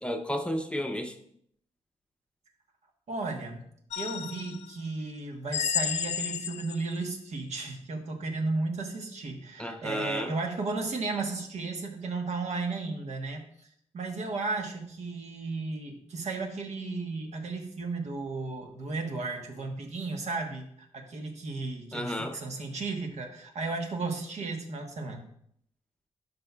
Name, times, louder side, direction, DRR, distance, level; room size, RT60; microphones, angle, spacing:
voice 1, 0.0-1.1 9.6-10.3 21.9-22.4, equal, 10° left, 4 dB, 0.7 m, -32 dB
voice 2, 3.1-3.7 4.0-13.5 13.9-20.7 20.9-25.3, right 3 dB, 65° right, 2 dB, 1.3 m, -34 dB
sound 1, 3.9-4.7 5.5-7.0, left 8 dB, 70° left, 0.5 m, -32 dB
12.5 x 5.3 x 2.4 m, 0.68 s
cardioid pair, 105°, 12 cm